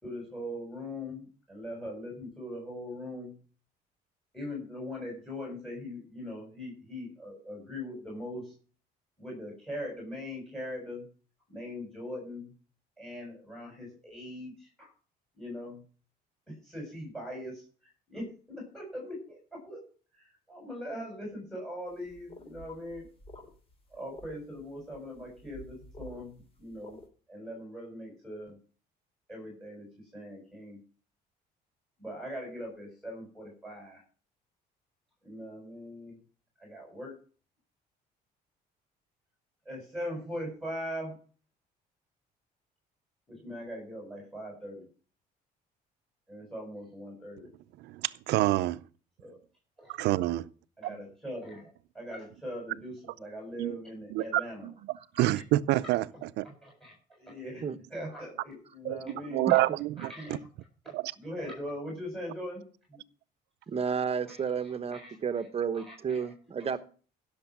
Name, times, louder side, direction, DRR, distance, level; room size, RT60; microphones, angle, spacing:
voice 1, 0.0-3.3 4.3-8.5 9.2-11.0 11.5-12.5 13.0-14.9 15.3-15.8 16.5-19.8 20.1-23.1 23.9-27.0 27.3-28.6 29.3-30.8 32.0-34.0 35.2-36.2 36.6-37.2 39.7-41.2 43.3-44.9 46.3-47.5 49.2-49.4 49.8-50.1 50.8-54.7 56.1-59.6 60.0-60.4 60.8-62.6 62.9-63.0 64.2-65.5 65.7-66.7, left 1 dB, ahead, 7.1 m, -41 dB
sound 1, 21.9-27.1, left 1 dB, 35° left, 4.0 m, -51 dB
voice 2, 47.8-48.8 49.9-50.5 53.6-53.7 54.1-54.7 55.2-56.0 56.4-56.5 58.8-60.1 60.9-61.1, right 16 dB, 85° right, 0.6 m, -27 dB
voice 3, 63.7-66.8, right 6 dB, 35° right, 1.1 m, -31 dB
16.0 x 6.8 x 6.0 m
cardioid pair, 110°, 17 cm